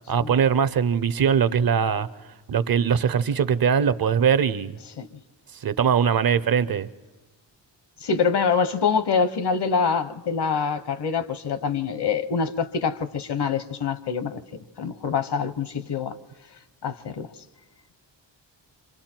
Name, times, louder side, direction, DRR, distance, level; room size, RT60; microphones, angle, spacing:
voice 1, 0.1-2.1 2.5-4.8 5.6-6.9, right 7 dB, 55° right, 0.6 m, -21 dB
voice 2, 8.0-14.4 14.8-16.1 16.8-17.3, left 6 dB, 65° left, 0.9 m, -25 dB
30.0 x 26.0 x 4.4 m
wide cardioid pair, 165°, 44 cm